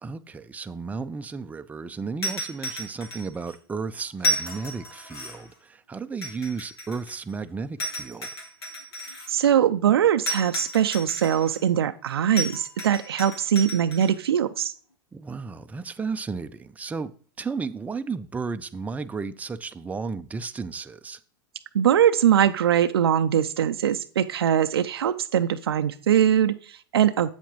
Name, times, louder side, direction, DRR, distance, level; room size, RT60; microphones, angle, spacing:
voice 1, 0.0-8.3 15.1-21.2, right 4 dB, 10° right, 0.5 m, -33 dB
sound 1, 2.2-3.5 4.2-5.5 6.2-7.3 7.8-9.3 10.3-11.6 12.4-14.1, equal, 85° left, 2.8 m, -32 dB
voice 2, 9.3-14.7 21.7-27.3, right 9 dB, 85° right, 0.4 m, -22 dB
8.1 x 7.1 x 3.0 m
hypercardioid pair, 100°, 12 cm